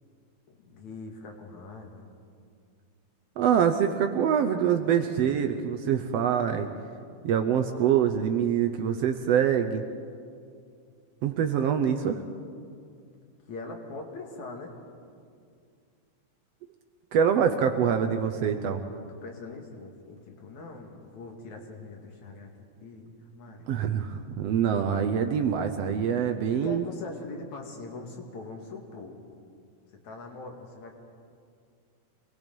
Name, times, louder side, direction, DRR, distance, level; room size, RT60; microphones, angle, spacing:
voice 1, 0.5-2.1 13.5-14.7 19.1-22.5 22.8-23.7 26.5-29.2 30.0-30.9, left 3 dB, 70° left, 1 dB, 3.4 m, -42 dB
voice 2, 3.4-6.7 7.2-9.8 11.2-12.2 17.1-18.8 23.7-26.9, right 8 dB, 70° right, 6 dB, 1.7 m, -25 dB
25.0 x 19.5 x 5.4 m, 2.3 s
omnidirectional pair, 3.4 m